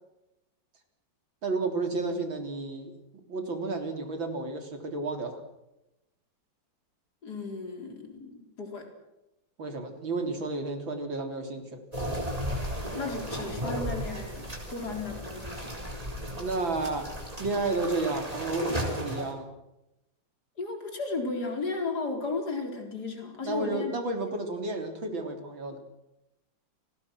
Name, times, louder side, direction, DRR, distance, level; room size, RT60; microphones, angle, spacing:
voice 1, 1.4-2.9 3.3-5.4 9.6-11.8 16.4-17.1 17.4-19.5 23.4-25.8, right 3 dB, 90° right, 5 dB, 4.3 m, -31 dB
voice 2, 7.2-8.9 12.9-15.6 20.6-23.9, left 3 dB, 55° left, 3 dB, 4.8 m, -34 dB
sound 1, 11.9-19.3, equal, 20° right, 4.6 m, -35 dB
29.0 x 20.0 x 6.2 m, 0.92 s
omnidirectional pair, 2.1 m